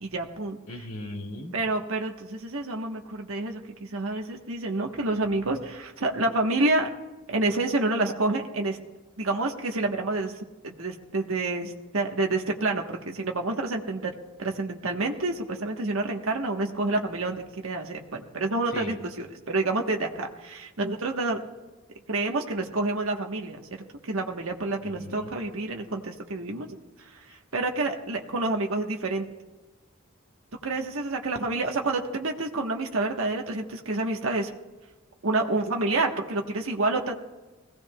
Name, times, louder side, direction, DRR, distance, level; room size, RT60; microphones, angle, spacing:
voice 1, 0.0-0.6 1.5-6.9 7.3-8.8 9.2-14.1 14.4-21.4 22.1-23.7 24.0-29.3 30.6-34.5 35.2-37.1, right 2 dB, 75° right, 2 dB, 1.2 m, -28 dB
voice 2, 0.7-1.5 18.7-19.0 24.8-25.3 27.3-27.4, left 1 dB, 65° left, 2 dB, 2.3 m, -38 dB
21.0 x 17.0 x 2.3 m, 1.2 s
head